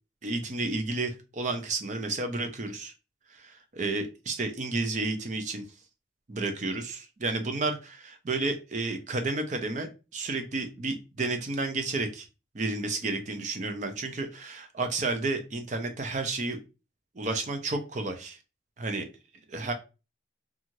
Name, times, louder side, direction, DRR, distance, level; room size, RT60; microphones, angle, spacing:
voice 1, 0.2-2.9 3.4-5.6 6.3-12.3 12.5-16.6 17.2-18.4 18.8-19.1 19.5-19.7, right 3 dB, 40° right, 7 dB, 0.5 m, -31 dB
2.6 x 2.4 x 3.0 m, 0.29 s
head